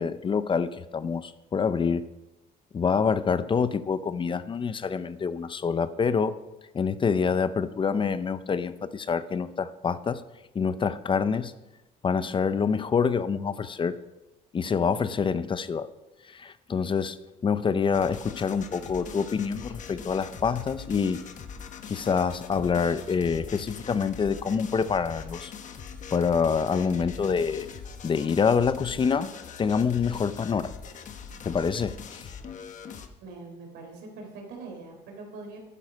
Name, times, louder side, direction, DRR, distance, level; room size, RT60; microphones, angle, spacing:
voice 1, 0.0-2.1 2.7-6.4 6.7-10.2 10.5-11.5 12.0-14.0 14.5-15.9 16.3-17.2 17.4-21.2 21.9-25.5 26.1-27.7 28.0-29.3 29.6-30.7 31.4-32.3, left 6 dB, 30° left, 14 dB, 0.6 m, -26 dB
sound 1, 17.9-33.1, left 6 dB, 45° left, 1.1 m, -42 dB
voice 2, 33.2-35.6, right 3 dB, 85° right, 2 dB, 3.5 m, -42 dB
11.0 x 10.5 x 5.3 m, 1.0 s
cardioid pair, 110°, 17 cm